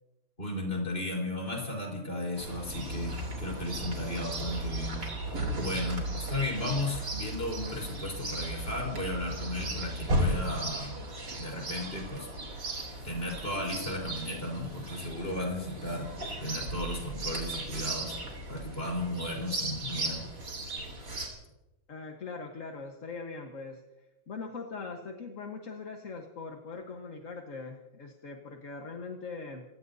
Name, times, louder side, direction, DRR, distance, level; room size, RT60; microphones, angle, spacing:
voice 1, 0.4-5.1 5.5-11.0 11.3-12.3 13.0-16.1 16.4-18.2 18.5-20.2, left 1 dB, 25° left, -1 dB, 4.7 m, -35 dB
Chirp tweet, 2.3-21.3, right 1 dB, 50° right, 3.8 m, -36 dB
voice 2, 21.9-23.8 24.3-29.6, left 4 dB, 40° left, 2 dB, 1.5 m, -41 dB
27.5 x 17.5 x 2.8 m, 1.0 s
omnidirectional pair, 2.3 m